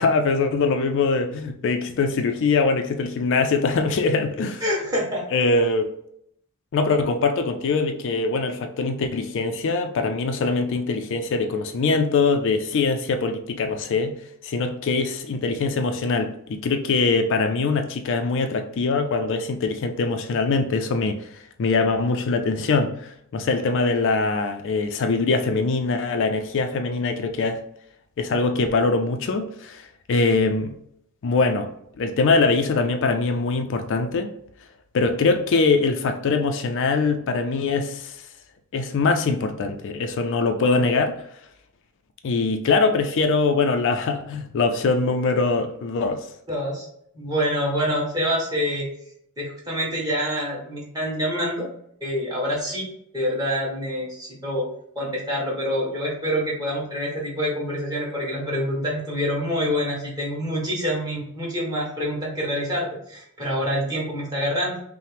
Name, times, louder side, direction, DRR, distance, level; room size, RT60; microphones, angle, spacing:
voice 1, 0.0-4.6 5.3-5.9 6.7-14.1 14.4-21.3 21.6-27.6 28.2-30.7 31.2-34.3 34.9-38.2 38.7-41.2 42.2-46.3, left 4 dB, 60° left, 0.4 m, -23 dB
voice 2, 4.6-5.2 46.5-46.9 47.1-48.9 49.4-51.6 52.0-52.9 53.1-54.7 54.9-64.8, equal, 15° right, 1.4 m, -26 dB
5.5 x 2.1 x 3.3 m
head